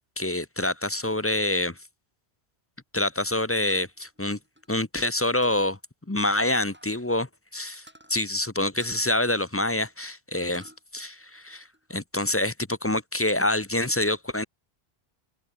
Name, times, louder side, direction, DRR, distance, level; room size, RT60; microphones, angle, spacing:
voice 1, 0.2-1.8 2.9-4.4 4.7-5.8 6.1-14.4, left 1 dB, 15° left, 0.9 m, -26 dB
sound 1, 3.7-5.1 5.4-5.8 6.5-7.1 7.4-7.5 7.9-8.1 8.8-9.9 10.3-10.8 11.2-12.0, equal, 10° right, 4.6 m, -52 dB
omnidirectional pair, 1.1 m